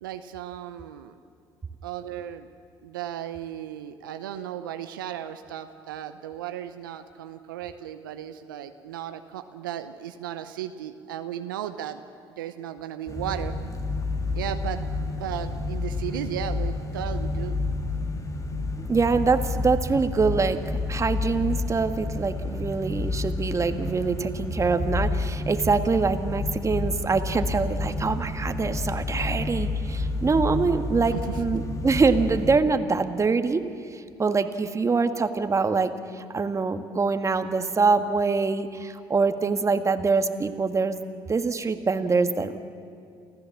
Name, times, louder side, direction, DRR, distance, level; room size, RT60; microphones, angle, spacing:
voice 1, 0.0-1.2 1.8-2.5 2.8-12.0 12.4-13.5 14.3-17.6 31.1-31.4, right 10 dB, 90° right, 9 dB, 0.7 m, -35 dB
sound 1, 13.1-32.6, left 3 dB, 30° left, 2.3 m, -30 dB
voice 2, 18.9-20.6 20.9-33.6 33.9-42.6, right 4 dB, 30° right, 9 dB, 1.6 m, -24 dB
28.5 x 14.5 x 7.2 m, 2.5 s
hypercardioid pair, 60°, 11 cm